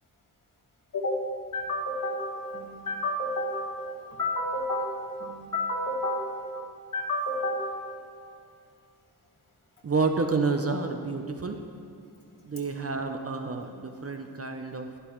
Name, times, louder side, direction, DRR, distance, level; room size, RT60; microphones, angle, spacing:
voice 1, 1.5-7.7, left 1 dB, 50° left, -3 dB, 1.9 m, -31 dB
voice 2, 9.8-11.6 12.4-14.9, right 4 dB, 35° right, 5 dB, 0.6 m, -29 dB
11.5 x 11.5 x 3.0 m, 2.5 s
wide cardioid pair, 105°, 40 cm